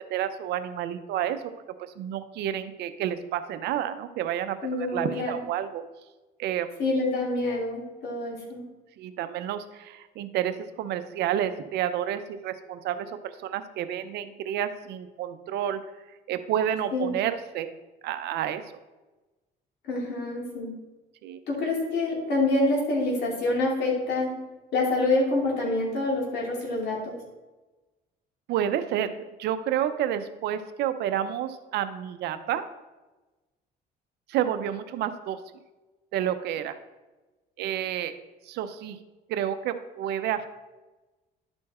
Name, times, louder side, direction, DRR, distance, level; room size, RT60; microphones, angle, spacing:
voice 1, 0.0-1.5 1.8-5.8 6.4-6.7 9.0-15.8 16.3-17.7 18.0-18.6 21.2-21.4 28.5-32.6 34.3-35.4 36.1-36.8 37.6-38.1 38.5-39.0 39.3-40.5, right 10 dB, 80° right, 10 dB, 0.7 m, -30 dB
voice 2, 4.6-5.4 6.8-8.6 16.9-17.1 19.8-20.7 21.5-24.4 24.7-27.2, left 2 dB, 75° left, -3 dB, 2.7 m, -26 dB
11.5 x 4.5 x 4.3 m, 1.1 s
cardioid pair, 110°, 17 cm